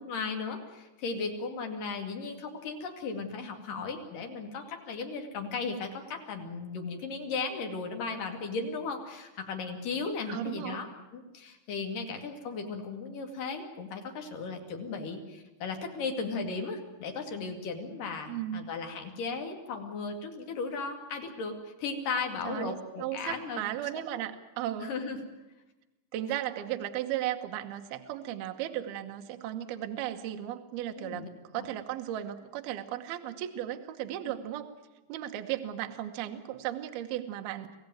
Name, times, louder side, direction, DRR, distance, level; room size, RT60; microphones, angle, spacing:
voice 1, 0.0-23.6 24.1-24.2 24.8-25.2 31.0-31.3 31.6-31.7 34.2-34.3, left 4 dB, 55° left, 4 dB, 3.5 m, -36 dB
voice 2, 10.3-10.8 18.3-18.7 22.4-24.9 26.1-31.2 31.5-34.7 35.1-37.7, right 12 dB, 70° right, 6 dB, 2.7 m, -35 dB
25.5 x 15.5 x 9.3 m, 1.1 s
omnidirectional pair, 5.2 m